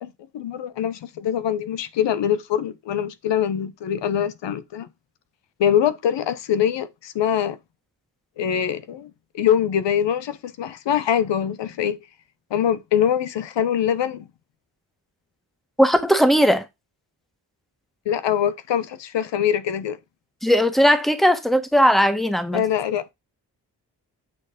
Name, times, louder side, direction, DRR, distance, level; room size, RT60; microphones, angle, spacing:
voice 1, 0.0-4.9 5.6-7.6 8.4-12.0 12.5-14.2 18.1-20.0 22.5-23.1, left 9 dB, 90° left, 0.9 m, -23 dB
voice 2, 15.8-16.6 20.4-22.6, equal, ahead, 1.6 m, -18 dB
8.8 x 4.3 x 5.0 m
cardioid pair, 55°, 42 cm